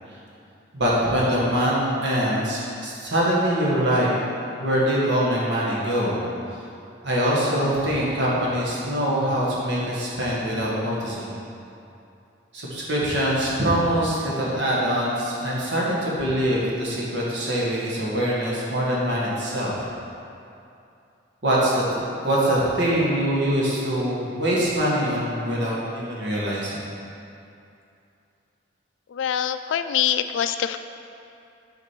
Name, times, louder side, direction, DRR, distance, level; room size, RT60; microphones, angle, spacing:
voice 1, 0.7-4.1 4.6-6.2 7.0-11.3 12.5-19.8 21.4-21.8 22.2-26.8, equal, 65° right, -6 dB, 1.5 m, -23 dB
voice 2, 29.1-30.8, left 9 dB, 75° left, 10 dB, 0.3 m, -24 dB
6.5 x 5.0 x 4.6 m, 2.6 s
head